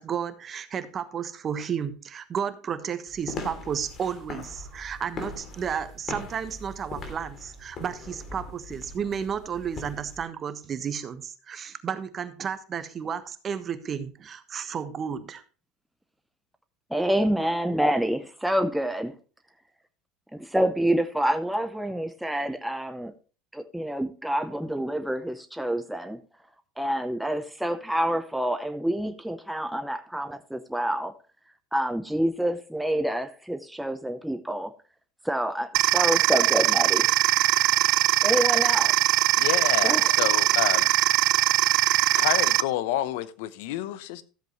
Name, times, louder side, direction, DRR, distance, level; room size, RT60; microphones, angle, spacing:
voice 1, 0.0-15.4, right 7 dB, 35° right, 1.2 m, -32 dB
sound 1, 3.1-10.2, left 2 dB, 40° left, 2.8 m, -40 dB
voice 2, 16.9-19.1 20.3-23.1 23.5-26.2 26.8-31.1 31.7-34.7 35.2-37.1 38.2-38.9 39.8-40.1, right 1 dB, 5° right, 0.7 m, -27 dB
sound 2, 35.7-42.6, right 17 dB, 60° right, 0.5 m, -21 dB
voice 3, 39.4-40.9 42.2-44.2, left 13 dB, 75° left, 0.8 m, -29 dB
14.0 x 7.7 x 3.1 m
hypercardioid pair, 90°, 0 cm